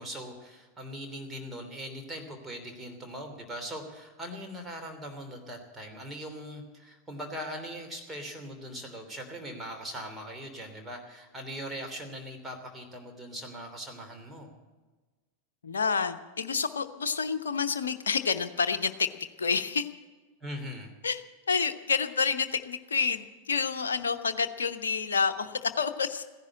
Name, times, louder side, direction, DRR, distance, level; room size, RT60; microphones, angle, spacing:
voice 1, 0.0-14.5 20.4-20.9, equal, 10° right, 3 dB, 3.1 m, -40 dB
voice 2, 15.6-19.9 21.0-21.2 21.5-26.2, left 5 dB, 70° left, 8 dB, 0.9 m, -29 dB
15.5 x 10.5 x 8.7 m, 1.3 s
figure-of-eight pair, 90°, 0 cm